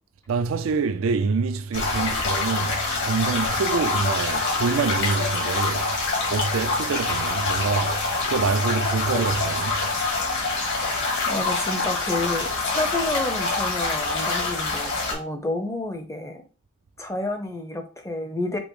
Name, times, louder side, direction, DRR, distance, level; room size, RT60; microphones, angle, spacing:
voice 1, 0.3-6.0 6.3-9.9, right 4 dB, 70° right, 0.4 m, -26 dB
sound 1, 1.7-15.1, left 3 dB, 60° left, 1.5 m, -25 dB
voice 2, 11.3-16.4 17.0-18.6, left 2 dB, 15° left, 0.6 m, -30 dB
5.2 x 2.0 x 4.7 m
head